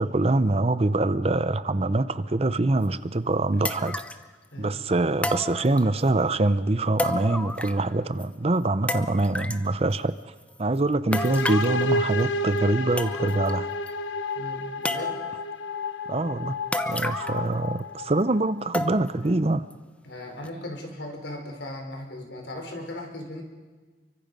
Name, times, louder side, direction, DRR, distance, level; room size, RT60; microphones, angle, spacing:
voice 1, 0.0-4.0 4.6-10.3 10.6-13.7 16.1-16.6 16.8-19.7, right 2 dB, 35° right, 0.6 m, -24 dB
sound 1, 2.8-2.9 3.6-4.3 5.2-6.1 7.0-7.9 8.2-8.3 8.9-9.7 11.1-11.8 12.6-12.7 13.0-13.5 13.9-14.0 14.8-15.4 16.7-17.5 17.8-17.9 18.7-19.3 19.7-19.8 20.4-20.5, left 1 dB, 5° left, 0.7 m, -31 dB
voice 2, 4.5-4.8 14.3-15.2 20.0-23.4, left 1 dB, 70° left, 4.4 m, -37 dB
sound 2, 11.1-18.8, left 2 dB, 90° left, 1.2 m, -31 dB
30.0 x 24.0 x 5.4 m
head